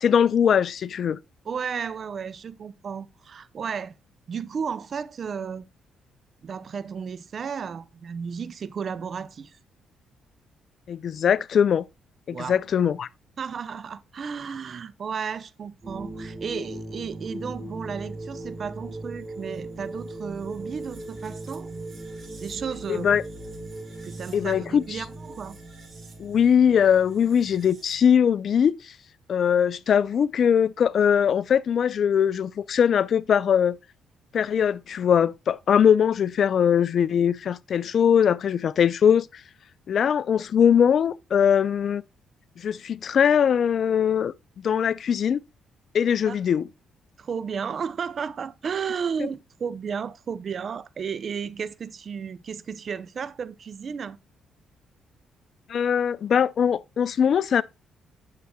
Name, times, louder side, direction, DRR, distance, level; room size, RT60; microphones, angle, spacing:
voice 1, 0.0-1.2 10.9-11.8 12.3-13.1 22.9-23.2 24.3-25.0 26.2-28.7 29.3-33.8 34.3-39.3 39.9-42.0 42.6-44.3 44.6-45.4 45.9-46.7 55.7-57.6, left 8 dB, 55° left, 0.4 m, -21 dB
voice 2, 1.4-3.9 4.3-5.6 6.4-9.6 12.3-12.6 13.4-21.7 22.4-23.2 24.0-25.6 46.2-46.4 47.2-54.2, right 6 dB, 50° right, 0.6 m, -33 dB
sound 1, 15.8-28.1, right 2 dB, 35° right, 4.9 m, -38 dB
9.6 x 7.7 x 2.3 m
cardioid pair, 90°, 0 cm